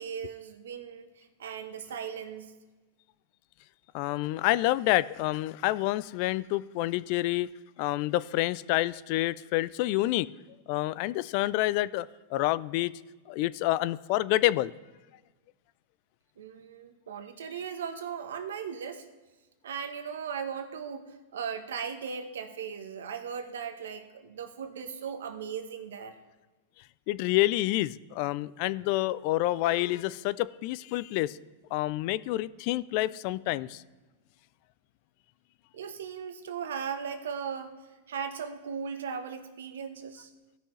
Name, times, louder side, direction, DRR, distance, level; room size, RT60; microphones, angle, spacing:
voice 1, 0.0-2.5 16.4-19.1 19.6-26.2 35.7-37.7 38.1-40.3, right 7 dB, 80° right, 8 dB, 1.0 m, -37 dB
voice 2, 3.9-7.5 7.8-10.3 10.7-12.9 13.3-14.7 27.1-31.4 31.7-33.8, left 17 dB, 55° left, 18 dB, 0.3 m, -28 dB
16.0 x 6.2 x 3.2 m, 1.2 s
hypercardioid pair, 110°, 0 cm